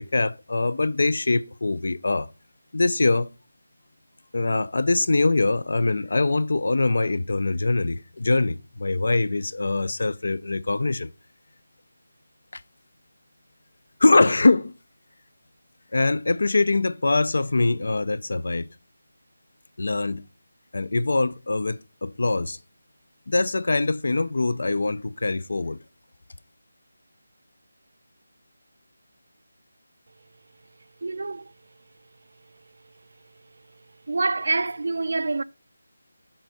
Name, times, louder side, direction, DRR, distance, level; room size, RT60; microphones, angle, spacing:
voice 1, 0.0-2.3 2.7-3.3 4.3-11.1 12.5-12.6 14.0-14.7 15.9-18.7 19.8-20.3 20.7-22.6 23.3-25.8, left 3 dB, 65° left, 0.5 m, -23 dB
voice 2, 31.0-31.5 32.8-32.9 33.8-35.4, right 3 dB, 60° right, 0.4 m, -27 dB
8.0 x 4.2 x 4.9 m
figure-of-eight pair, 170°, 0 cm